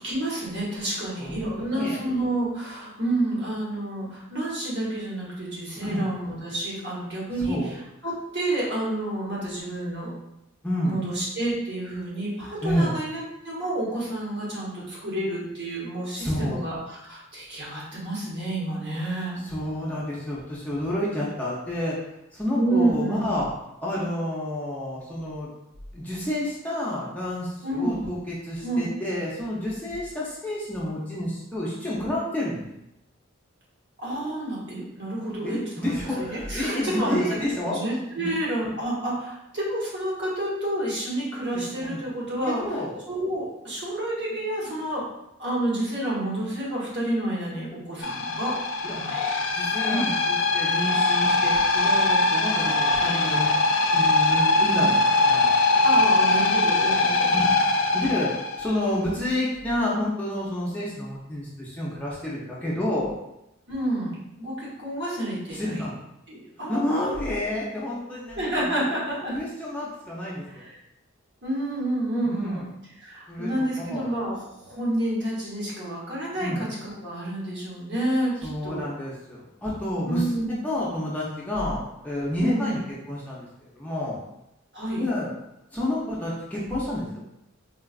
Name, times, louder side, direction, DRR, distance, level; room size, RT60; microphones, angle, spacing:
voice 1, 0.0-10.1 10.8-19.4 22.5-23.3 27.6-28.1 28.6-28.9 34.0-37.3 37.7-42.8 43.1-45.0 45.4-48.6 48.9-49.3 49.9-50.0 55.8-57.4 63.7-65.9 66.3-67.2 68.4-69.3 70.5-70.7 71.4-78.8 80.0-80.6 82.4-82.8 84.7-85.0, right 1 dB, 55° right, -6 dB, 1.1 m, -29 dB
voice 2, 1.2-2.0 5.8-6.1 7.4-7.7 10.6-11.0 12.6-12.9 16.1-16.6 19.4-21.9 22.3-23.5 23.8-25.5 25.9-32.6 35.4-37.8 38.2-38.3 41.8-42.0 42.4-42.9 48.8-48.9 49.5-53.5 53.9-55.5 57.3-57.7 57.9-58.3 58.6-63.1 65.5-65.9 66.7-68.9 69.3-70.6 72.2-72.6 73.3-73.5 73.9-74.1 76.4-76.6 78.4-80.3 80.6-82.8 83.1-83.5 83.7-84.2 84.9-85.3 85.7-87.0, left 1 dB, 5° left, -7 dB, 0.5 m, -29 dB
sound 1, 48.0-58.8, left 2 dB, 65° left, 0.4 m, -22 dB
3.8 x 2.3 x 2.4 m, 0.86 s
head